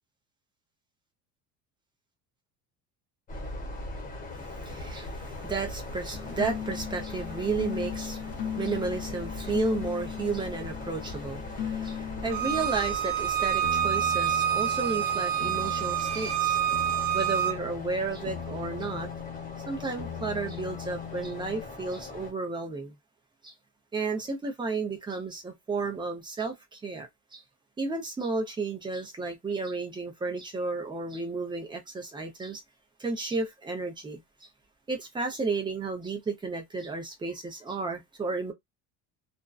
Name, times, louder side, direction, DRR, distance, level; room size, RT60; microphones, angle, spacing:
sound 1, 3.3-22.3, left 2 dB, 20° left, 1.0 m, -40 dB
voice 1, 4.3-16.6 17.1-19.1 19.7-22.9 23.4-23.5 23.9-27.4 27.8-32.6 33.0-34.5 34.9-38.5, right 4 dB, 10° right, 0.5 m, -33 dB
sound 2, 6.1-12.8 13.6-21.7, left 9 dB, 50° left, 0.7 m, -38 dB
Bowed string instrument, 12.3-17.6, right 10 dB, 65° right, 0.7 m, -27 dB
2.5 x 2.2 x 2.3 m
cardioid pair, 155°, 39 cm